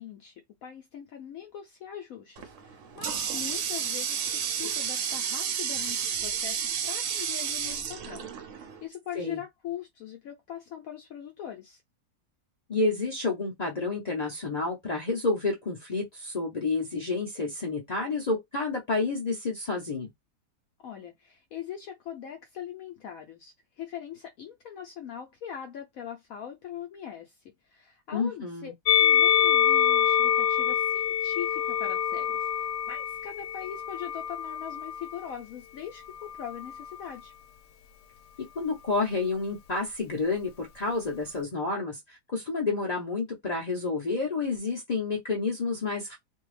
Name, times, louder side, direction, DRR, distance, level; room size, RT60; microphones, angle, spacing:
voice 1, 0.0-11.8 20.8-37.3, left 9 dB, 70° left, 0.9 m, -41 dB
Water tap faucet, 2.4-8.8, right 8 dB, 65° right, 0.8 m, -31 dB
voice 2, 12.7-20.1 28.1-28.7 38.4-46.2, left 3 dB, 55° left, 0.4 m, -30 dB
Musical instrument, 28.9-35.3 36.1-37.1, left 9 dB, 85° left, 1.2 m, -26 dB
2.6 x 2.3 x 3.2 m
omnidirectional pair, 1.8 m